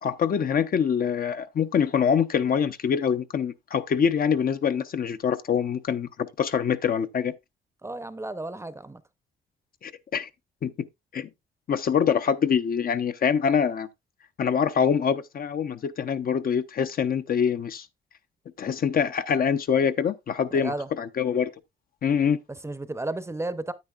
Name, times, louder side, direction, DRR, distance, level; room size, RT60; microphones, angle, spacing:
voice 1, 0.0-7.3 9.8-10.3 10.6-10.9 11.1-11.3 11.7-13.9 14.4-17.9 18.6-21.5 22.0-22.4, left 7 dB, 45° left, 0.6 m, -25 dB
voice 2, 7.8-9.0 20.5-20.9 22.5-23.7, right 2 dB, 15° right, 0.6 m, -33 dB
9.4 x 8.7 x 2.4 m
cardioid pair, 90°, 20 cm